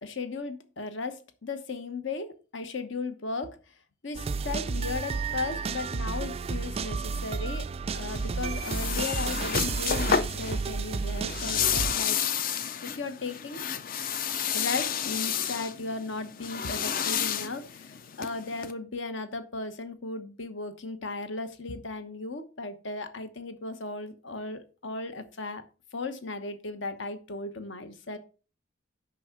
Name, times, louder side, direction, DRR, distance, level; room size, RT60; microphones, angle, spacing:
voice 1, 0.0-3.7 4.0-12.4 12.8-13.6 14.5-25.6 25.9-28.2, left 3 dB, 60° left, 10 dB, 1.1 m, -36 dB
sound 1, 4.1-11.9, right 5 dB, 30° right, 0.3 m, -32 dB
sound 2, 7.9-18.7, left 7 dB, 45° left, 0.6 m, -31 dB
6.2 x 5.5 x 6.0 m, 0.35 s
head